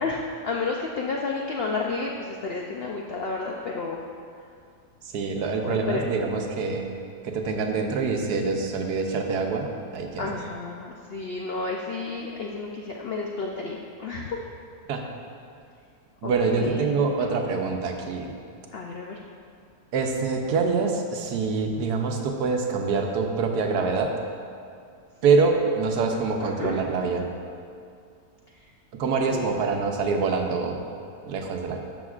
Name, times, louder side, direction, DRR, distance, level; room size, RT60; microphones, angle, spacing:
voice 1, 0.0-4.0 5.6-6.0 10.2-14.4 16.2-16.8 17.2-17.3 18.7-19.2 26.4-26.8 29.3-29.6, left 3 dB, 80° left, -1 dB, 0.5 m, -31 dB
voice 2, 5.0-6.9 7.2-10.3 14.9-15.0 16.2-18.4 19.9-24.1 25.2-27.3 29.0-30.8 31.3-31.8, right 4 dB, 85° right, 3 dB, 1.3 m, -25 dB
12.0 x 6.7 x 2.4 m, 2.3 s
omnidirectional pair, 1.7 m